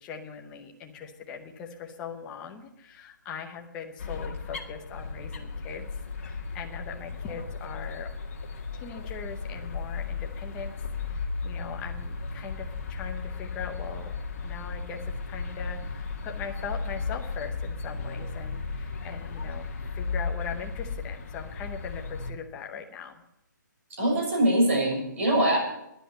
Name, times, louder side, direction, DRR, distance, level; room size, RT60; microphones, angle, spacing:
voice 1, 0.0-5.9 6.2-8.1 8.8-10.7 11.1-14.1 14.4-23.2, left 6 dB, 10° left, 3 dB, 0.7 m, -40 dB
sound 1, 4.0-22.3, left 4 dB, 40° left, 1.8 m, -35 dB
voice 2, 24.0-25.6, right 1 dB, 40° right, -1 dB, 6.5 m, -23 dB
11.0 x 10.5 x 8.8 m, 0.83 s
hypercardioid pair, 175°, 11 cm